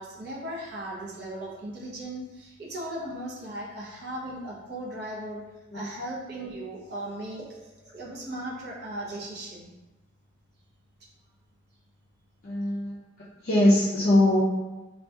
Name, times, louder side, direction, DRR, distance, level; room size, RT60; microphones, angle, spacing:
voice 1, 0.0-5.4 5.7-9.7, right 1 dB, 55° right, -5 dB, 0.5 m, -37 dB
voice 2, 12.4-12.9 13.4-14.4, left 1 dB, 45° left, -9 dB, 0.4 m, -21 dB
2.6 x 2.2 x 2.2 m, 1.1 s
head